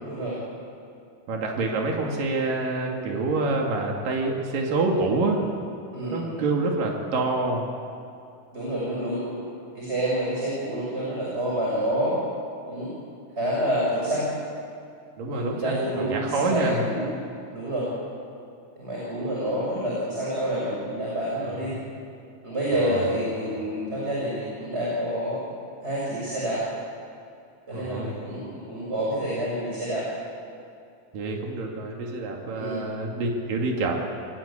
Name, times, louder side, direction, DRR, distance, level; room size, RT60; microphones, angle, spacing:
voice 1, 0.0-0.4 5.9-6.4 8.5-9.4 9.7-12.1 12.7-12.9 13.4-14.3 15.3-17.0 17.5-17.9 18.8-21.7 22.4-25.4 25.8-26.6 27.7-30.0 32.5-32.8, equal, 20° right, -5 dB, 6.1 m, -28 dB
voice 2, 1.3-5.4 6.1-7.7 15.2-16.9 21.6-21.8 22.7-23.2 27.7-28.1 31.1-33.9, right 3 dB, 85° right, 0 dB, 4.2 m, -27 dB
29.0 x 18.5 x 8.6 m, 2.6 s
omnidirectional pair, 3.8 m